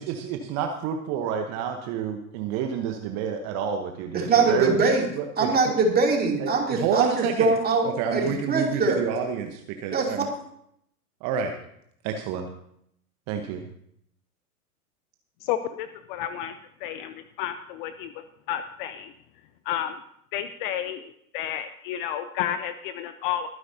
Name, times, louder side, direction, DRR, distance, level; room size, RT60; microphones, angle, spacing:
voice 1, 0.0-4.8 5.2-5.7 6.4-7.5 7.8-10.3 11.2-11.5 12.0-12.5 13.3-13.7, right 7 dB, 35° right, 5 dB, 1.2 m, -29 dB
voice 2, 4.1-5.1 5.4-9.1 9.9-10.1, right 4 dB, 20° right, 0 dB, 3.0 m, -23 dB
voice 3, 15.4-16.6 16.8-19.1 19.7-20.0 20.3-23.5, left 10 dB, 35° left, 12 dB, 0.6 m, -31 dB
23.0 x 9.6 x 2.8 m, 0.72 s
figure-of-eight pair, 95°, 45 cm